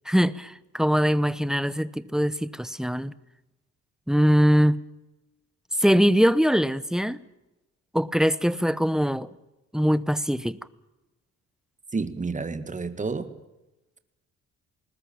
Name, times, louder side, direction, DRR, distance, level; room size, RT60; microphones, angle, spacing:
voice 1, 0.1-3.1 4.1-4.8 5.8-7.2 7.9-9.3 9.7-10.6, equal, ahead, 0.9 m, -22 dB
voice 2, 11.9-13.3, right 4 dB, 25° right, 1.9 m, -30 dB
20.0 x 20.0 x 8.9 m
cardioid pair, 90°, 30 cm